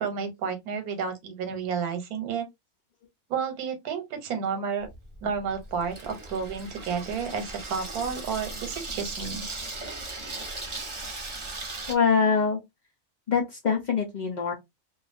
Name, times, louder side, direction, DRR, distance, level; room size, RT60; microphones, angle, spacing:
voice 1, 0.0-2.5 3.3-4.9 5.2-9.4, right 6 dB, 85° right, 1.2 m, -31 dB
Water tap faucet / Sink (filling or washing), 4.8-11.9, right 2 dB, 30° right, 0.6 m, -38 dB
voice 2, 11.9-12.6 13.3-14.5, left 5 dB, 65° left, 0.4 m, -24 dB
2.5 x 2.3 x 2.4 m
omnidirectional pair, 1.5 m